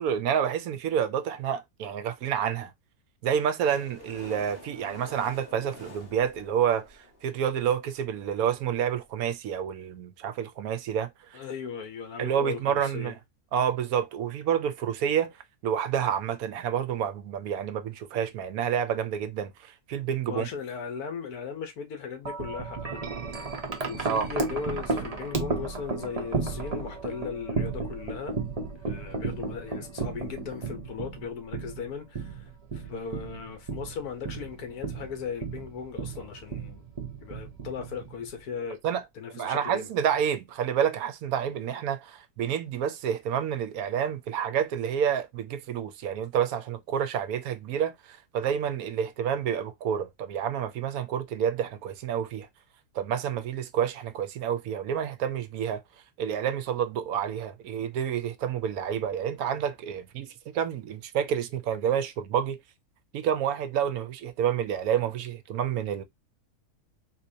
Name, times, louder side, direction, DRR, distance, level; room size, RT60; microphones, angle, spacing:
voice 1, 0.0-2.7 3.2-11.4 12.2-13.2 13.5-15.4 15.6-20.5 24.0-24.3 38.8-39.0 39.3-52.5 52.9-55.8 56.2-62.6 63.1-66.0, right 8 dB, 75° right, 1.0 m, -29 dB
sound 1, 3.7-7.5 8.2-8.3 8.5-8.6 8.8-8.9 9.2-9.3, left 2 dB, 40° left, 1.2 m, -47 dB
voice 2, 11.3-13.1 20.3-23.1 23.9-28.4 28.8-36.8 37.2-38.8 39.2-39.9, left 6 dB, 75° left, 1.4 m, -37 dB
Wind chime, 22.3-38.4, right 4 dB, 35° right, 0.6 m, -34 dB
4.0 x 2.8 x 2.6 m
omnidirectional pair, 1.6 m